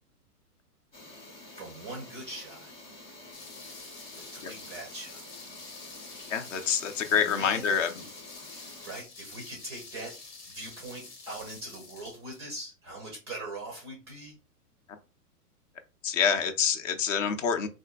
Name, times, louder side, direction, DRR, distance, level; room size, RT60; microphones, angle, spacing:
sound 1, 0.9-9.0, left 2 dB, 10° left, 0.8 m, -49 dB
voice 1, 1.6-2.7 4.1-5.5 7.1-8.1 8.6-10.1 10.5-14.4, right 2 dB, 20° right, 0.4 m, -42 dB
sound 2, 3.3-12.4, left 3 dB, 85° left, 1.1 m, -47 dB
voice 2, 6.3-7.9 16.0-17.7, left 7 dB, 55° left, 0.6 m, -26 dB
3.7 x 2.5 x 2.2 m
hypercardioid pair, 115°, 47 cm